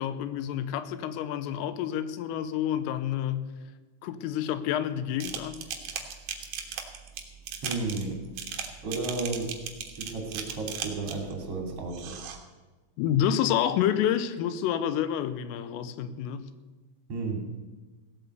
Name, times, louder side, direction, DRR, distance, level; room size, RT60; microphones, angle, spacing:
voice 1, 0.0-3.5 4.0-5.7 13.0-16.5, left 10 dB, 90° left, 13 dB, 3.5 m, -29 dB
sound 1, 5.2-11.3 11.9-12.4, right 8 dB, 70° right, 2.0 m, -37 dB
voice 2, 7.6-8.2 8.8-9.5 10.0-12.1 17.1-17.4, right 3 dB, 35° right, 2 dB, 3.0 m, -33 dB
16.5 x 8.6 x 8.1 m, 1.3 s
omnidirectional pair, 5.8 m